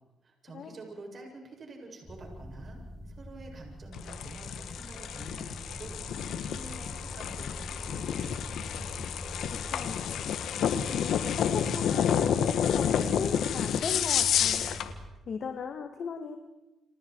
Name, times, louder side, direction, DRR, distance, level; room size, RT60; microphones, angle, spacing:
voice 1, 0.2-8.4, right 2 dB, 45° right, 1 dB, 7.9 m, -48 dB
sound 1, 2.0-15.1, equal, 10° left, 2.5 m, -43 dB
sound 2, 3.9-14.9, left 8 dB, 75° left, 1.8 m, -30 dB
voice 2, 10.9-14.7 15.3-16.4, left 6 dB, 55° left, 6 dB, 2.1 m, -37 dB
30.0 x 27.5 x 4.8 m, 1.0 s
cardioid pair, 90°, 0 cm